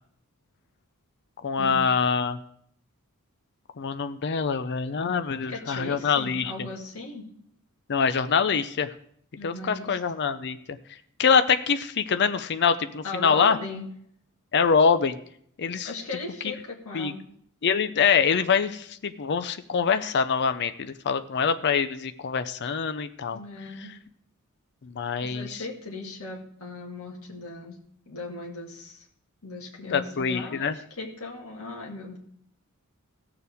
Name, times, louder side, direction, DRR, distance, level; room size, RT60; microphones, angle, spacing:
voice 1, 1.4-2.4 3.8-6.5 7.9-8.9 9.4-10.8 11.2-13.6 14.5-15.2 15.6-15.9 16.9-17.1 17.6-23.4 24.8-25.6 29.9-30.8, left 6 dB, 50° left, 11 dB, 0.5 m, -24 dB
voice 2, 5.5-7.3 9.4-10.0 13.0-13.9 15.8-17.2 23.3-23.9 25.2-27.8 28.0-29.0 29.4-32.2, left 3 dB, 75° left, -2 dB, 1.8 m, -37 dB
16.5 x 6.9 x 3.4 m, 0.66 s
head